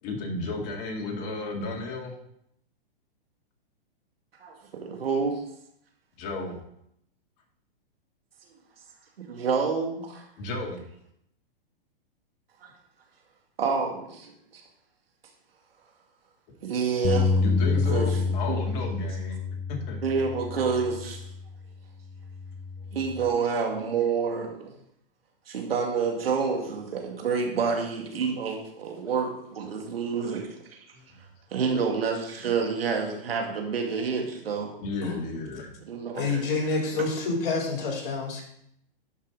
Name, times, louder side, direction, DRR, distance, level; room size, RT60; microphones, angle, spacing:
voice 1, 0.0-2.1 6.2-6.6 10.4-10.8 17.4-19.4 19.7-20.0 30.9-31.0 34.8-35.7, left 3 dB, 45° left, 1 dB, 2.2 m, -33 dB
voice 2, 4.4-5.4 9.2-10.2 12.6-12.7 13.6-14.6 16.6-17.4 17.6-18.6 20.0-21.3 22.9-24.7 25.5-30.8 31.5-34.7 35.8-36.6 36.9-37.1, right 5 dB, 80° right, 2 dB, 2.2 m, -28 dB
Bass guitar, 17.0-21.5 22.1-23.3, left 4 dB, 25° left, 0.8 m, -28 dB
voice 3, 36.1-38.5, left 3 dB, 60° left, -1 dB, 3.9 m, -28 dB
11.0 x 5.6 x 3.9 m, 0.74 s
hypercardioid pair, 125°, 29 cm